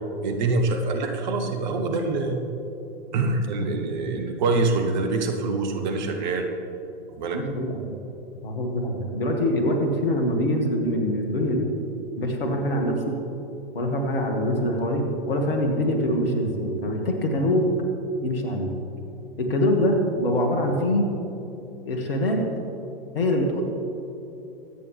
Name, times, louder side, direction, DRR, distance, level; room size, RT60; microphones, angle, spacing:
voice 1, 0.2-2.5 3.1-6.5 7.1-7.4, right 3 dB, 50° right, 5 dB, 1.4 m, -25 dB
voice 2, 7.3-8.0 8.4-11.7 12.2-13.1 13.7-17.7 18.2-18.7 19.4-21.1 21.9-22.4 23.1-23.6, left 1 dB, 65° left, 2 dB, 2.1 m, -24 dB
24.0 x 9.1 x 3.4 m, 2.9 s
figure-of-eight pair, 100°, 30 cm